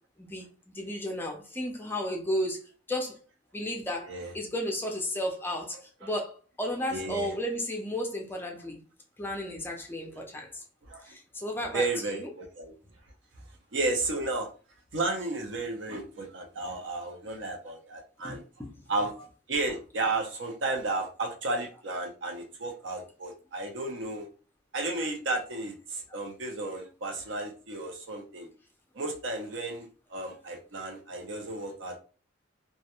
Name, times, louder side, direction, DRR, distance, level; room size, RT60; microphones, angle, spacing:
voice 1, 0.7-2.6 2.9-3.2 3.5-8.8 9.2-10.6 11.0-11.8 12.1-12.3 18.2-18.8, left 1 dB, 10° left, 0.4 m, -33 dB
voice 2, 6.7-7.4 10.0-10.1 10.9-11.1 11.6-12.7 13.7-14.5 14.9-18.4 18.9-24.3 24.7-28.5 28.9-32.0, right 2 dB, 70° right, 0.6 m, -33 dB
2.3 x 2.1 x 2.8 m
head